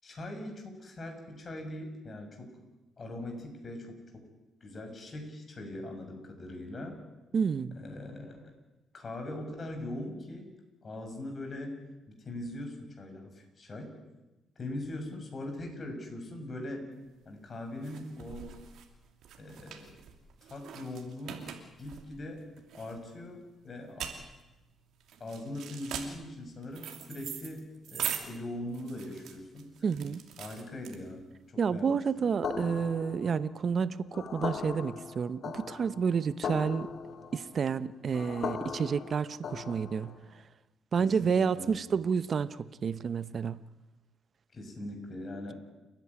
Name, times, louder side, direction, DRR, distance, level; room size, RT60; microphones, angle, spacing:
voice 1, 0.0-2.5 3.0-4.2 4.6-7.0 7.7-8.5 8.9-10.5 10.8-11.8 12.1-13.9 14.6-16.8 17.2-18.5 19.4-20.0 20.4-21.5 21.8-22.4 22.7-24.1 25.2-30.0 30.4-32.3 40.9-41.8 44.5-45.5, left 1 dB, 40° left, 6.7 m, -41 dB
voice 2, 7.3-7.8 29.8-30.2 31.6-36.9 37.3-40.1 40.9-43.6, right 6 dB, 50° right, 0.9 m, -30 dB
sound 1, 17.0-31.4, right 9 dB, 80° right, 2.9 m, -42 dB
sound 2, 32.4-40.2, left 6 dB, 60° left, 1.9 m, -39 dB
29.5 x 11.0 x 9.8 m
cardioid pair, 90°, 0 cm